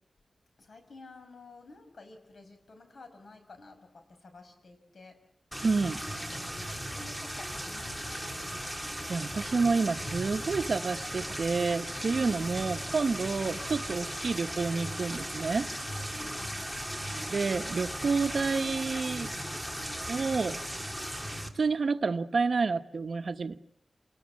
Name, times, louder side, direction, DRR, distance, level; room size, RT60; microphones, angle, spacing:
voice 1, 0.6-5.2 6.3-8.4 16.1-16.7, left 3 dB, 75° left, 6 dB, 5.8 m, -52 dB
sound 1, 5.5-21.5, equal, 5° left, 2.7 m, -37 dB
voice 2, 5.6-6.0 9.1-15.7 17.3-19.3 20.1-20.6 21.5-23.6, right 4 dB, 70° right, 10 dB, 1.0 m, -29 dB
29.0 x 20.0 x 7.4 m, 0.75 s
wide cardioid pair, 105°, 0 cm